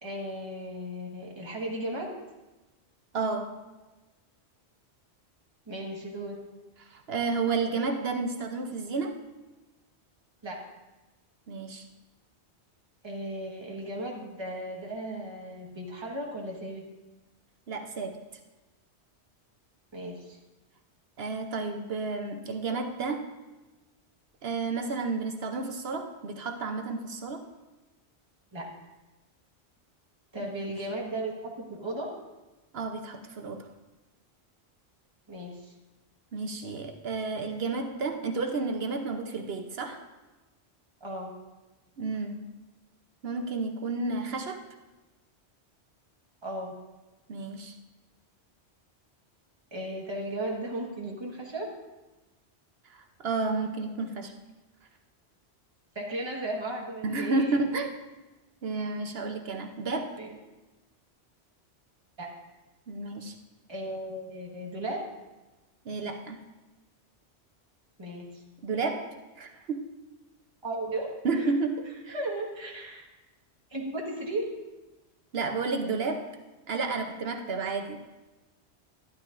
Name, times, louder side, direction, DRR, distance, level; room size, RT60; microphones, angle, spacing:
voice 1, 0.0-2.1 5.7-6.4 10.4-10.6 13.0-16.8 19.9-20.4 28.5-28.7 30.3-32.1 35.3-35.7 41.0-41.3 46.4-46.7 49.7-51.7 55.9-57.6 60.1-60.3 62.2-62.3 63.7-65.0 68.0-68.4 70.6-71.1 71.3-71.5 72.1-73.1 73.7-74.5, right 1 dB, 25° right, -2 dB, 1.5 m, -35 dB
voice 2, 3.1-3.6 6.8-9.2 11.5-11.8 17.7-18.2 21.2-23.3 24.4-27.4 30.4-30.5 32.7-33.7 36.3-40.0 42.0-42.4 43.2-44.6 47.3-47.7 52.9-54.3 57.0-57.9 58.6-60.1 62.9-63.4 65.8-66.4 68.6-69.9 71.2-72.2 75.3-76.3 76.7-78.0, right 3 dB, 65° right, 5 dB, 1.0 m, -31 dB
12.0 x 12.0 x 2.5 m, 1.1 s
omnidirectional pair, 1.2 m